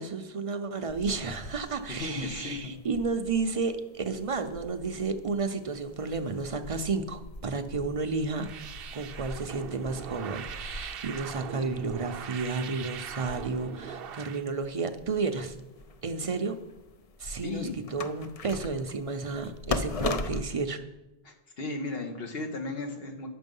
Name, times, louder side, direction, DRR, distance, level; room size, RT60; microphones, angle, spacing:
voice 1, 0.0-8.5 8.9-15.5 16.0-16.6 17.2-20.8, right 4 dB, 40° right, 8 dB, 0.5 m, -32 dB
sound 1, 0.9-20.4, left 3 dB, 45° left, 0.5 m, -41 dB
voice 2, 1.9-2.7 17.4-17.9 21.2-23.3, left 3 dB, 70° left, 4 dB, 1.4 m, -35 dB
sound 2, 8.4-14.4, right 8 dB, 70° right, 0.8 m, -41 dB
9.5 x 6.2 x 5.4 m, 1.0 s
omnidirectional pair, 1.0 m